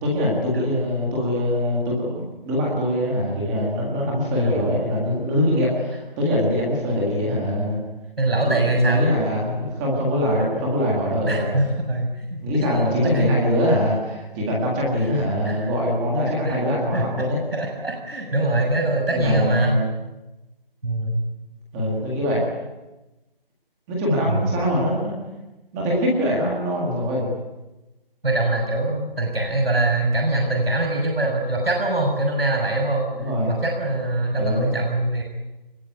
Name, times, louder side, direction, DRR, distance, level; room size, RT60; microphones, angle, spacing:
voice 1, 0.0-7.8 8.4-11.5 12.4-17.4 19.1-19.9 21.7-22.4 23.9-25.1 25.7-27.3 33.1-33.6 34.4-34.6, left 1 dB, 5° right, -3 dB, 1.8 m, -23 dB
voice 2, 8.2-9.0 11.3-13.4 15.3-15.7 16.4-16.6 16.9-17.0 17.5-19.8 20.8-21.2 24.3-24.5 28.2-35.2, right 2 dB, 90° right, 1 dB, 7.0 m, -23 dB
25.0 x 21.5 x 9.4 m, 1.0 s
figure-of-eight pair, 175°, 29 cm